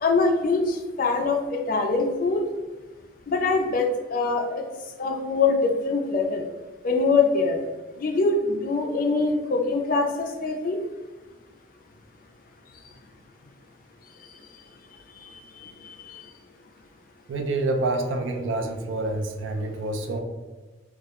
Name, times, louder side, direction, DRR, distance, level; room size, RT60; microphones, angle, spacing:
voice 1, 0.0-2.4 3.3-4.5 5.0-6.5 6.8-7.6 8.0-10.8 15.2-16.2, left 3 dB, 45° left, 3 dB, 0.3 m, -24 dB
voice 2, 17.3-20.2, right 2 dB, 80° right, 4 dB, 0.4 m, -27 dB
2.3 x 2.0 x 2.8 m, 1.3 s
head